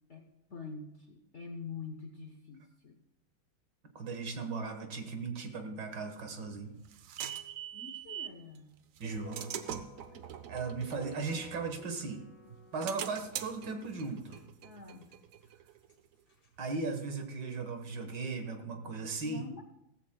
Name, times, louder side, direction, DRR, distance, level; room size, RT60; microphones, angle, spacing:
voice 1, 0.1-3.0 7.7-8.8 14.6-15.0 19.2-19.6, left 4 dB, 55° left, 4 dB, 0.8 m, -46 dB
voice 2, 4.0-6.7 9.0-9.5 10.5-12.3 12.7-14.4 16.6-19.5, right 4 dB, 60° right, 5 dB, 1.9 m, -37 dB
sound 1, 6.2-8.4 9.0-12.1 12.5-15.9, right 9 dB, 80° right, 0.7 m, -43 dB
sound 2, 9.2-13.0 14.1-14.4 15.1-15.2 15.4-15.5 15.9-16.0 16.3-16.5 18.2-18.3, left 5 dB, 75° left, 2.3 m, -53 dB
17.0 x 14.5 x 2.2 m, 0.86 s
omnidirectional pair, 2.2 m